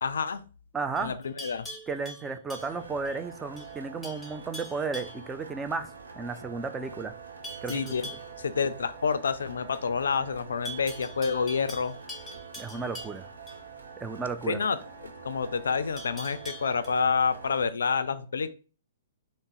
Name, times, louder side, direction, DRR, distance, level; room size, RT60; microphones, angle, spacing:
voice 1, 0.0-0.4 1.0-1.7 7.7-8.0 8.4-12.0 14.5-14.8 15.2-18.5, left 5 dB, 75° left, 0.3 m, -28 dB
voice 2, 0.7-1.2 1.9-7.1 7.6-8.2 12.6-13.3 14.0-14.6, right 4 dB, 15° right, 0.4 m, -34 dB
Livestock farm animals working animals, 1.0-3.2 3.6-3.8 4.0-5.3 7.4-8.3 10.7-13.6 16.0-16.9, equal, 5° left, 0.9 m, -43 dB
sound 1, 2.6-17.7, right 5 dB, 80° right, 0.6 m, -46 dB
3.5 x 2.0 x 3.9 m
hypercardioid pair, 120°, 0 cm